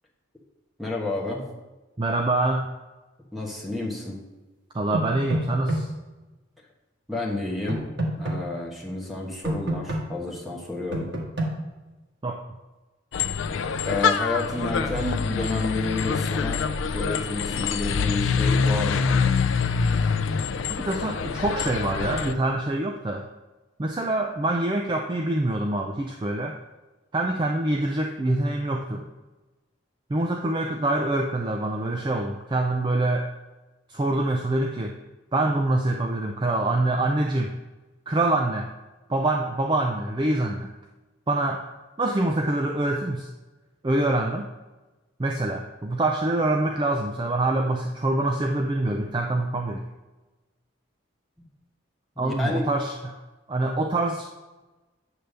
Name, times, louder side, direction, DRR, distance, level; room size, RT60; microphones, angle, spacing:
voice 1, 0.8-1.5 3.3-4.2 7.1-7.8 8.2-11.1 13.8-16.6 16.9-19.3 52.2-52.7, left 2 dB, ahead, -3 dB, 1.3 m, -30 dB
voice 2, 2.0-2.7 4.7-5.9 12.2-12.4 20.7-23.3 23.8-26.6 27.1-29.1 30.1-33.3 33.9-35.0 35.3-37.6 38.1-38.7 39.1-40.7 41.3-41.6 42.0-43.3 43.8-44.5 45.2-49.9 52.2-53.2 53.5-54.2, right 2 dB, 25° right, 2 dB, 0.4 m, -25 dB
sound 1, 4.9-5.8 7.7-8.4 9.4-10.0 10.9-11.5, right 1 dB, 55° right, 1.4 m, -26 dB
sound 2, 13.1-22.3, left 5 dB, 70° left, 0.4 m, -25 dB
9.0 x 3.4 x 6.6 m, 1.1 s
head